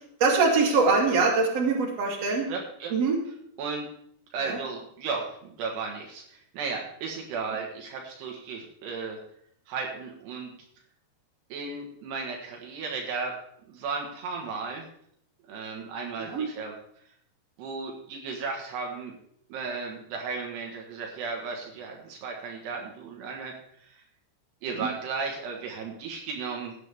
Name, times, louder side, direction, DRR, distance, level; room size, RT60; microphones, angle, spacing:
voice 1, 0.2-2.5 2.9-3.2 4.4-4.6 16.2-16.4 24.7-24.9, right 4 dB, 40° right, -2 dB, 3.5 m, -23 dB
voice 2, 2.5-2.9 3.6-3.9 4.3-9.2 9.7-10.5 11.5-13.4 13.7-14.9 15.5-16.7 17.6-19.1 19.5-23.5 23.8-24.0 24.6-26.8, right 4 dB, 75° right, 1 dB, 3.5 m, -35 dB
16.5 x 9.6 x 3.5 m, 0.69 s
omnidirectional pair, 4.9 m